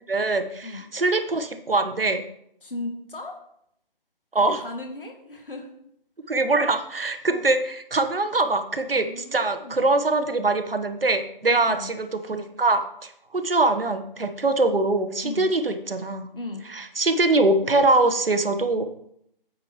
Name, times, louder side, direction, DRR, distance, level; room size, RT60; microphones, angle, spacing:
voice 1, 0.1-2.2 4.3-4.6 6.3-16.3 16.7-18.9, right 2 dB, 75° right, 9 dB, 1.0 m, -23 dB
voice 2, 2.6-3.4 4.5-5.7 8.9-9.9 11.5-11.9 15.2-15.5 16.3-16.6, left 2 dB, 65° left, 3 dB, 1.9 m, -36 dB
9.1 x 7.7 x 3.0 m, 0.72 s
figure-of-eight pair, 155°, 29 cm